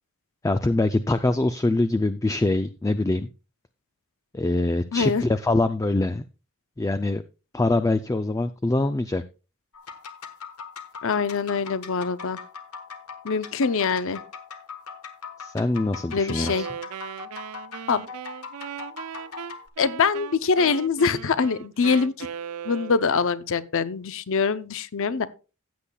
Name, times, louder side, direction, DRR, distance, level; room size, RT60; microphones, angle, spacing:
voice 1, 0.4-3.3 4.3-6.3 6.8-7.2 7.5-9.2 15.4-16.7, left 2 dB, 15° left, 0.3 m, -24 dB
voice 2, 4.9-5.2 11.0-12.4 13.2-14.2 16.1-16.7 17.9-18.0 19.8-22.3 22.6-25.3, left 5 dB, 65° left, 0.6 m, -24 dB
sound 1, 9.7-19.7, left 6 dB, 85° left, 1.3 m, -41 dB
Wind instrument woodwind instrument, 16.3-23.3, right 8 dB, 85° right, 0.4 m, -38 dB
15.5 x 8.3 x 2.3 m
head